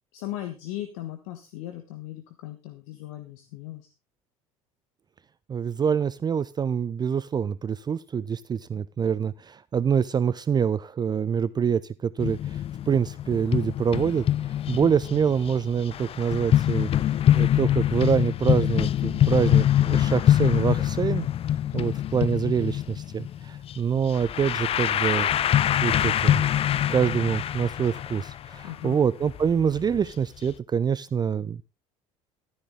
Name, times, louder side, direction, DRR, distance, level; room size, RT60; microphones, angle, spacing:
voice 1, 0.1-3.9 21.7-22.0 28.6-29.0, left 14 dB, 60° left, 7 dB, 1.3 m, -37 dB
voice 2, 5.5-12.6 12.9-14.2 14.7-16.9 17.3-21.3 21.7-25.3 25.8-26.4 26.9-31.6, right 7 dB, 25° right, 18 dB, 0.5 m, -25 dB
sound 1, 12.2-30.2 30.5-30.6, left 11 dB, 35° left, 0.6 m, -25 dB
13.0 x 11.0 x 3.5 m, 0.27 s
figure-of-eight pair, 65°, 18 cm